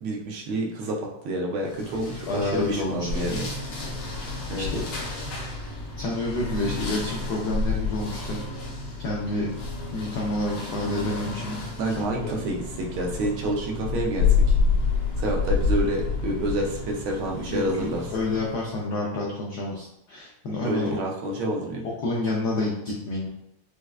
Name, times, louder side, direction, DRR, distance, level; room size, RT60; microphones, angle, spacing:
voice 1, 0.0-3.5 4.5-4.7 11.8-14.6 15.2-18.0 20.6-21.9, right 1 dB, 80° right, 0 dB, 1.4 m, -28 dB
sound 1, 1.7-18.8, left 4 dB, 65° left, 1.2 m, -29 dB
voice 2, 2.3-3.4 4.0-4.2 4.6-4.8 6.0-8.4 9.0-9.5 9.9-11.6 12.0-12.3 17.5-21.0 22.0-23.3, left 2 dB, 80° left, -3 dB, 0.9 m, -29 dB
4.7 x 2.1 x 2.3 m, 0.78 s
omnidirectional pair, 2.4 m